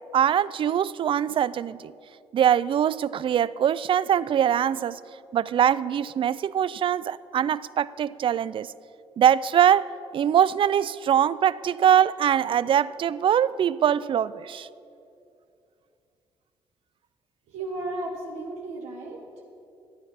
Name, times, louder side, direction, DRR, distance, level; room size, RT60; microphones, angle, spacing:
voice 1, 0.1-1.9 2.3-5.0 5.3-8.7 9.2-14.7, right 9 dB, 50° right, 18 dB, 0.4 m, -22 dB
voice 2, 17.5-19.4, right 2 dB, 90° right, -2 dB, 1.3 m, -34 dB
12.5 x 9.2 x 5.7 m, 2.5 s
cardioid pair, 80°, 11 cm